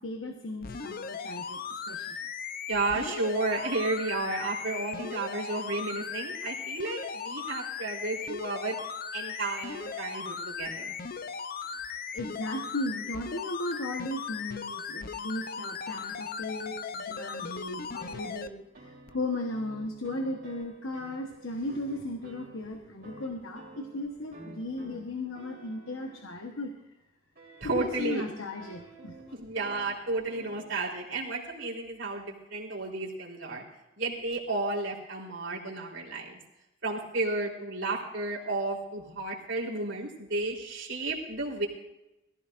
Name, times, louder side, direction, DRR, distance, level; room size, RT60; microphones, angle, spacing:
voice 1, 0.0-2.2 11.7-26.7 27.5-29.4, left 1 dB, 85° left, 4 dB, 1.3 m, -36 dB
sound 1, 0.6-18.5 19.1-19.2, left 6 dB, 45° left, 0.6 m, -38 dB
voice 2, 2.7-8.8 9.1-10.9 27.6-28.2 29.3-33.6 34.0-36.4 36.8-41.7, right 2 dB, 65° right, -2 dB, 3.7 m, -32 dB
sound 2, 17.8-26.6 27.4-30.6, right 2 dB, 50° right, 3.6 m, -51 dB
22.0 x 15.0 x 2.6 m, 0.92 s
head